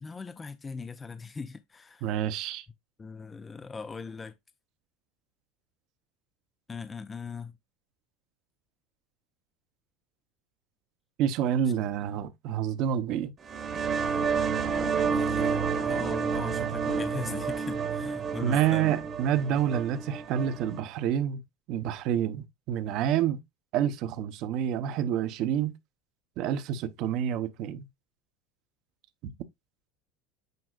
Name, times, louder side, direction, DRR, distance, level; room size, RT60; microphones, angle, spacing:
voice 1, 0.0-2.1 3.0-4.3 6.7-7.6 12.1-12.2 14.8-18.9, left 5 dB, 15° left, 0.4 m, -40 dB
voice 2, 2.0-2.6 11.2-13.3 18.4-21.4 21.7-23.4 23.7-25.7 26.4-27.9, right 10 dB, 50° right, 0.8 m, -28 dB
sound 1, 13.4-20.8, right 6 dB, 25° right, 1.1 m, -30 dB
9.3 x 4.9 x 2.4 m
supercardioid pair, 150°, 0 cm